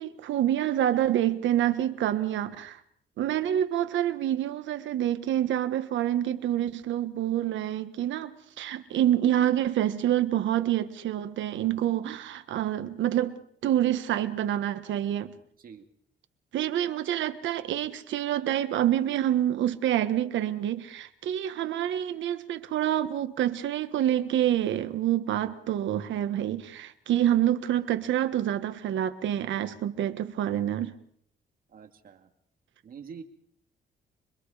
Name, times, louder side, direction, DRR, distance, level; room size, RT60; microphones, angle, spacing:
voice 1, 0.0-2.8 3.2-15.3 16.5-30.9, right 11 dB, 90° right, 1.4 m, -27 dB
voice 2, 31.7-32.3 32.8-33.2, right 6 dB, 50° right, 2.2 m, -45 dB
26.0 x 23.0 x 5.0 m
cardioid pair, 150°, 19 cm